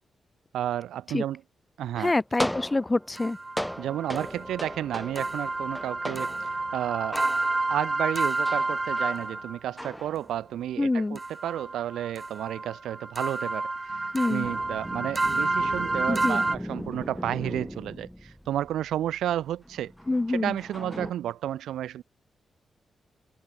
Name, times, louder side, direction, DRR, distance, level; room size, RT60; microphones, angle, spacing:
voice 1, 0.5-1.4 1.8-2.1 3.8-7.2 7.7-19.9 20.3-22.0, right 11 dB, 85° right, 1.0 m, -32 dB
voice 2, 2.0-3.4 10.8-11.2 14.1-14.5 16.1-16.4 20.1-20.5, left 2 dB, 25° left, 1.0 m, -26 dB
sound 1, 2.0-8.0 8.4-10.7 13.9-21.1, equal, 5° left, 4.2 m, -38 dB
sound 2, 3.2-9.6 11.2-16.6, right 3 dB, 30° right, 1.1 m, -30 dB
supercardioid pair, 55°, 0 cm